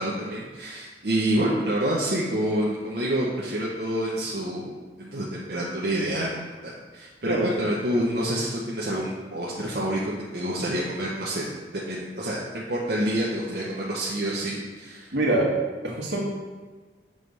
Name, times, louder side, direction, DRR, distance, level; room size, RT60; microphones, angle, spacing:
voice 1, 0.0-6.3 6.6-11.4 11.7-15.1, right 1 dB, 60° right, -5 dB, 0.8 m, -28 dB
voice 2, 15.1-15.5 15.8-16.2, right 1 dB, 85° right, -3 dB, 1.4 m, -24 dB
6.2 x 3.2 x 5.3 m, 1.4 s
head